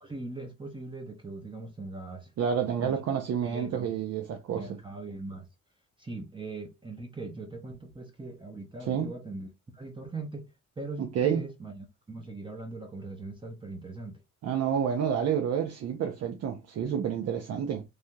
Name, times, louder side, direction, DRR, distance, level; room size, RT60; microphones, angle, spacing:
voice 1, 0.0-2.3 2.8-3.0 3.4-3.9 4.6-5.5 6.0-9.5 9.7-10.5 10.8-14.2, right 3 dB, 15° right, 0.7 m, -40 dB
voice 2, 2.4-4.8 8.9-9.1 11.0-11.4 14.4-17.8, right 8 dB, 55° right, 0.6 m, -29 dB
3.3 x 2.3 x 2.6 m
cardioid pair, 90°, 30 cm